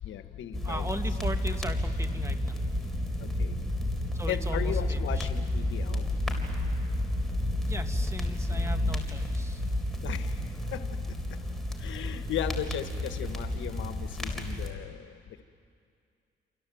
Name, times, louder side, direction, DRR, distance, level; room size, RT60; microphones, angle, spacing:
voice 1, 0.0-0.9 3.2-3.6 4.3-6.1 10.0-10.8 11.8-15.4, left 10 dB, 75° left, 9 dB, 1.2 m, -36 dB
sound 1, 0.5-14.7, left 1 dB, ahead, 3.6 m, -31 dB
voice 2, 0.6-2.6 4.1-5.3 7.7-9.6, right 1 dB, 15° right, 7 dB, 2.0 m, -38 dB
28.0 x 27.5 x 7.7 m, 2.4 s
cardioid pair, 90°, 20 cm